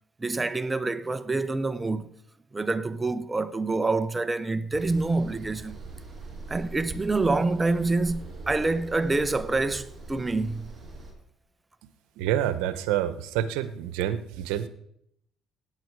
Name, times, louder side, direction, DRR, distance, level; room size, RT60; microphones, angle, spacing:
voice 1, 0.2-2.1 2.5-5.8 6.5-10.7, right 3 dB, 20° right, 1.0 m, -27 dB
sound 1, 4.7-11.1, right 3 dB, 45° right, 6.4 m, -42 dB
voice 2, 12.2-14.7, right 11 dB, 85° right, 1.0 m, -28 dB
17.5 x 9.6 x 4.8 m
supercardioid pair, 80°, 0 cm